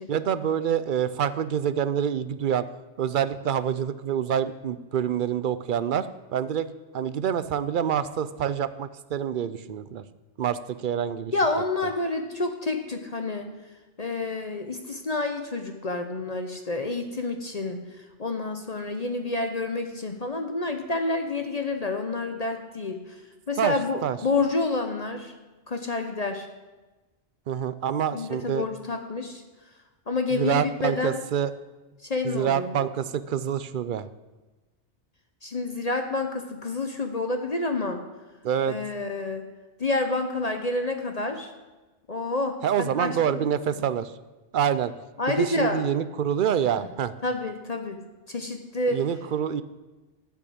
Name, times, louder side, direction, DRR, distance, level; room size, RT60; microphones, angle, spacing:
voice 1, 0.1-2.6 3.0-6.7 6.9-10.0 10.4-11.3 23.6-23.8 24.0-24.2 27.5-28.6 30.3-31.5 32.2-34.1 38.4-38.8 42.6-44.1 44.5-44.9 45.3-47.1 48.9-49.6, right 8 dB, 55° right, 14 dB, 0.6 m, -26 dB
voice 2, 11.3-13.5 14.0-23.0 23.5-25.3 25.7-26.5 28.1-29.4 30.1-31.2 32.1-32.7 35.4-38.0 38.7-39.4 39.8-41.5 42.1-43.2 45.2-45.8 47.2-48.0 48.3-49.0, left 3 dB, 35° left, 5 dB, 0.9 m, -28 dB
12.5 x 6.1 x 8.6 m, 1.2 s
omnidirectional pair, 1.2 m